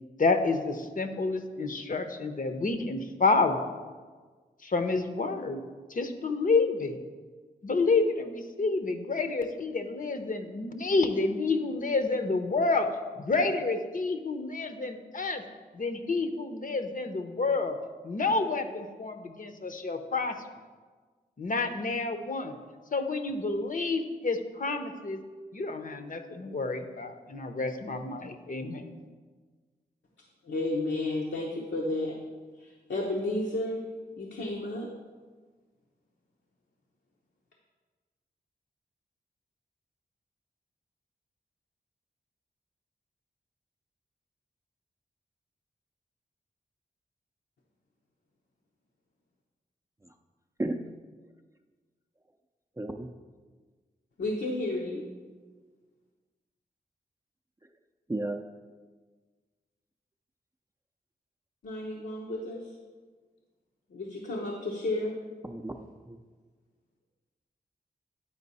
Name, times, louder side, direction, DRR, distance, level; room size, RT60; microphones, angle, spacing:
voice 1, 0.2-3.6 4.6-5.6 5.9-7.0 7.6-12.9 13.2-15.4 15.7-17.8 18.0-20.3 21.4-22.6 22.9-25.2 25.5-29.0, left 3 dB, 50° left, 7 dB, 0.7 m, -29 dB
voice 2, 30.4-32.2 32.6-33.8 34.2-34.9 54.2-55.1 61.6-62.7 63.9-65.2, left 2 dB, 80° left, -2 dB, 0.9 m, -32 dB
voice 3, 52.8-53.1 58.1-58.4 65.4-66.2, right 1 dB, 15° right, 3 dB, 0.5 m, -33 dB
8.7 x 4.5 x 4.1 m, 1.4 s
cardioid pair, 45°, 18 cm